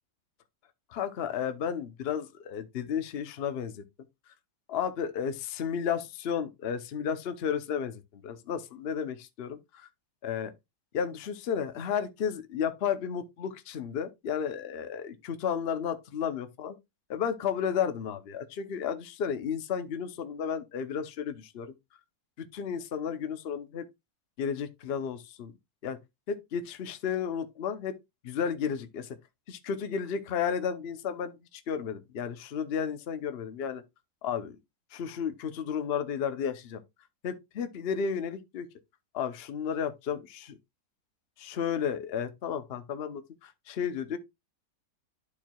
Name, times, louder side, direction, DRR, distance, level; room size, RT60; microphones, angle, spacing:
voice 1, 0.9-3.8 4.7-9.9 10.2-10.5 10.9-16.8 17.1-21.7 22.5-23.8 24.4-25.5 25.8-26.0 26.3-27.9 28.2-29.2 29.5-33.8 34.2-34.6 34.9-36.8 37.2-38.7 39.1-40.5 41.4-44.2, left 7 dB, 50° left, 0.8 m, -33 dB
12.0 x 4.5 x 2.3 m
omnidirectional pair, 1.9 m